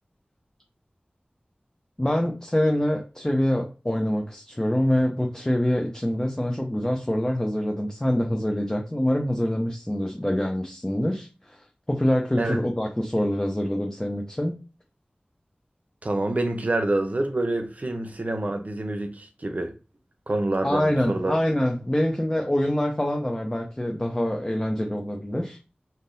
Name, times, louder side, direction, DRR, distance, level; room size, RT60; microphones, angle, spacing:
voice 1, 2.0-14.6 20.6-25.6, left 1 dB, 20° left, 0.6 m, -25 dB
voice 2, 16.0-19.7 20.3-21.3, right 2 dB, 50° right, 0.7 m, -27 dB
3.6 x 2.7 x 2.6 m
wide cardioid pair, 45°, 3 cm